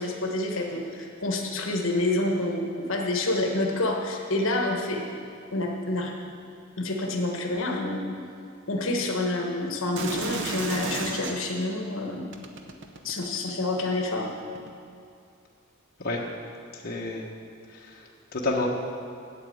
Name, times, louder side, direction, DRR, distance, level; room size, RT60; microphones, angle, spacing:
voice 1, 0.0-5.0 5.5-6.1 6.8-8.0 8.7-12.3 13.0-14.3, left 2 dB, 65° left, 1 dB, 1.3 m, -28 dB
sound 1, 10.0-11.6 12.3-13.7 14.6-14.7, right 3 dB, 60° right, 0.9 m, -33 dB
voice 2, 16.7-17.3 17.7-18.0 18.3-18.7, left 2 dB, 45° left, -3 dB, 1.3 m, -29 dB
8.7 x 8.5 x 8.0 m, 2.5 s
head